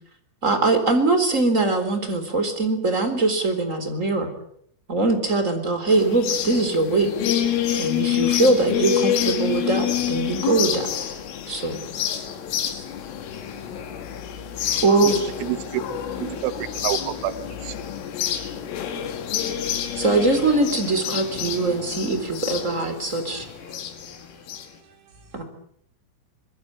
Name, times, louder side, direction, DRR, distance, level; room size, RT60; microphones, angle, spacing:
voice 1, 0.4-4.3 4.9-7.1 7.8-10.9 11.5-11.8 14.8-15.2 20.0-23.5 25.3-25.4, right 3 dB, 15° right, 3.4 m, -22 dB
sound 1, 5.9-24.7, left 10 dB, 75° left, 4.8 m, -28 dB
voice 2, 12.2-14.6 15.6-16.8 18.2-18.3 18.6-18.7 19.6-19.8 21.5-21.6 22.8-23.0 23.3-25.4, right 4 dB, 55° right, 6.4 m, -51 dB
voice 3, 15.5-17.3 17.7-17.8, right 14 dB, 85° right, 4.0 m, -28 dB
25.0 x 21.0 x 8.9 m
omnidirectional pair, 5.9 m